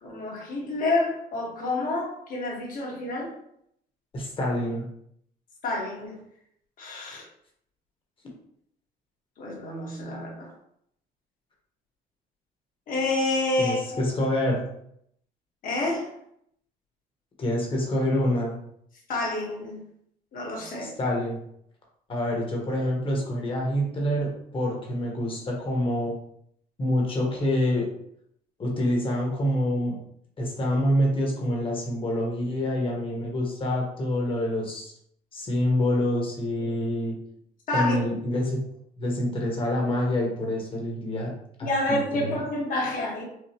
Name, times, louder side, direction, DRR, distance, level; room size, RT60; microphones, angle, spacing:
voice 1, 0.0-3.3 5.6-6.2 6.8-7.2 9.4-10.5 12.9-13.8 15.6-16.1 19.1-19.8 20.3-20.9 37.7-37.9 41.6-43.2, left 2 dB, 55° left, -2 dB, 1.5 m, -28 dB
voice 2, 4.1-4.8 13.6-14.6 17.4-18.6 20.8-21.4 22.1-26.1 26.8-27.9 28.6-30.0 30.4-34.9 35.3-37.2 37.7-38.6 39.0-41.3 41.6-42.3, left 1 dB, 30° left, -1 dB, 1.3 m, -26 dB
4.9 x 2.3 x 3.0 m, 0.71 s
cardioid pair, 110°, 17 cm